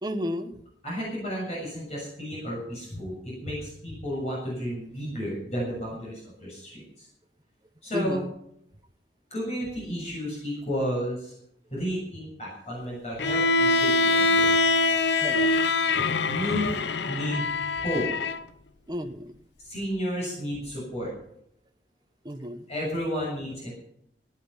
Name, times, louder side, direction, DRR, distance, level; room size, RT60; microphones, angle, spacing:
voice 1, 0.0-0.5 7.9-8.3 15.2-15.5 18.9-19.3 22.2-22.7, equal, 25° right, 5 dB, 1.3 m, -32 dB
voice 2, 0.8-7.1 7.8-8.3 9.3-11.3 11.7-14.5 16.3-16.8 17.1-17.5 17.8-18.1 19.6-21.1 22.7-23.7, equal, 40° left, -5 dB, 7.1 m, -32 dB
Bowed string instrument, 13.2-18.4, left 3 dB, 80° left, 0.8 m, -24 dB
18.0 x 10.5 x 5.8 m, 0.72 s
head